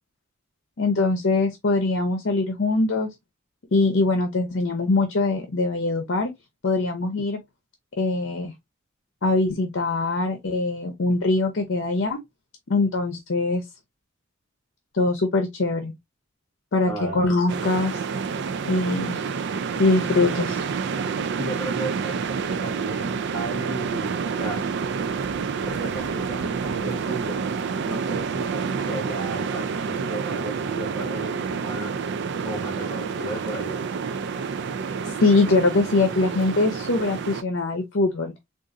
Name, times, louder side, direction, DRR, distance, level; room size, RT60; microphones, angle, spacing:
voice 1, 0.8-3.1 3.7-6.3 6.6-7.4 8.0-8.5 9.2-12.2 12.7-13.6 14.9-15.9 16.7-18.0 18.6-19.2 19.8-20.6 35.2-38.3, left 3 dB, 60° left, 0.7 m, -22 dB
voice 2, 16.9-17.3 21.4-24.6 25.7-27.4 27.8-31.9 32.4-33.8, right 2 dB, ahead, 2.1 m, -34 dB
sound 1, 17.5-37.4, right 5 dB, 60° right, 0.3 m, -28 dB
3.8 x 2.5 x 2.5 m
head